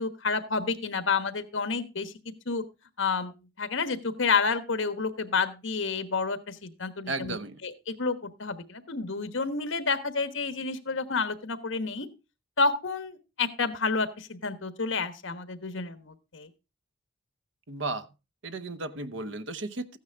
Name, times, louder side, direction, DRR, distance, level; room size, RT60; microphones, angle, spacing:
voice 1, 0.0-2.6 3.0-3.3 3.6-7.3 7.6-12.1 12.6-16.5, left 4 dB, 75° left, 1.3 m, -30 dB
voice 2, 7.1-7.6 17.7-18.1 18.4-20.0, right 2 dB, 70° right, 0.9 m, -34 dB
14.0 x 9.4 x 3.5 m
head